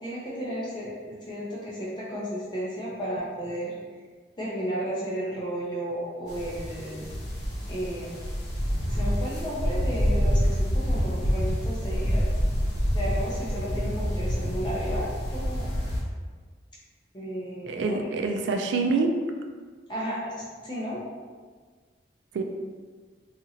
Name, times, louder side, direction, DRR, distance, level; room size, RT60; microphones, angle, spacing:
voice 1, 0.0-3.7 4.4-7.1 7.7-8.2 8.9-12.2 12.9-15.1 15.3-15.7 17.1-18.3 19.9-21.0, equal, 25° left, -6 dB, 0.5 m, -33 dB
sound 1, 6.3-16.0, equal, 70° left, 0.9 m, -27 dB
voice 2, 17.7-19.2 22.3-22.4, right 4 dB, 80° right, 3 dB, 0.3 m, -26 dB
3.0 x 2.4 x 2.7 m, 1.5 s
head